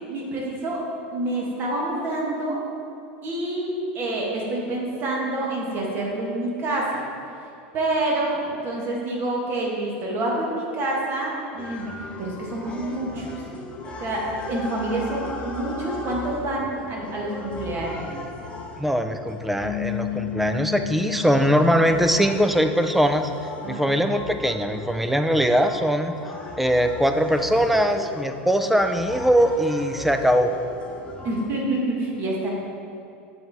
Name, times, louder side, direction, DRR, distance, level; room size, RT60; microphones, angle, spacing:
voice 1, 0.1-0.8 1.1-2.6 3.2-7.0 7.7-13.4 14.0-18.1 23.6-23.9 31.2-32.5, right 2 dB, 40° right, -2 dB, 1.4 m, -27 dB
sound 1, 11.6-31.5, left 2 dB, 20° left, 0.8 m, -38 dB
voice 2, 18.8-23.3 23.7-26.1 26.6-30.5, equal, ahead, 7 dB, 0.3 m, -21 dB
sound 2, 19.6-22.9, left 15 dB, 70° left, 0.8 m, -33 dB
7.6 x 4.1 x 3.5 m, 2.5 s
supercardioid pair, 120°, 6 cm